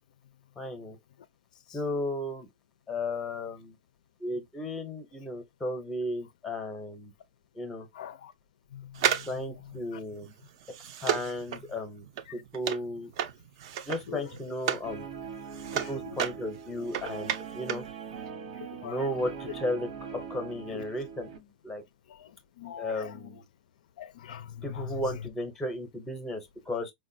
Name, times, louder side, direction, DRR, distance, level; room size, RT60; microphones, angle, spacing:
voice 1, 0.6-1.0 1.7-2.5 2.9-3.8 4.2-7.1 7.6-7.9 9.3-10.3 11.0-12.0 12.3-13.1 13.9-15.1 15.9-17.8 18.8-21.8 22.8-23.4 24.6-26.9, left 1 dB, 5° left, 0.6 m, -34 dB
voice 2, 8.0-8.3 8.7-9.2 14.1-14.3 16.1-16.2 18.6-19.1 20.7-20.8 22.2-22.3 22.6-23.1 24.0-25.0, left 9 dB, 65° left, 0.4 m, -42 dB
sound 1, 8.9-14.9 15.3-17.9 18.2-18.3, right 9 dB, 40° right, 0.4 m, -33 dB
Guitar, 14.8-21.4, right 6 dB, 90° right, 1.0 m, -41 dB
4.6 x 2.1 x 2.6 m
supercardioid pair, 175°, 4 cm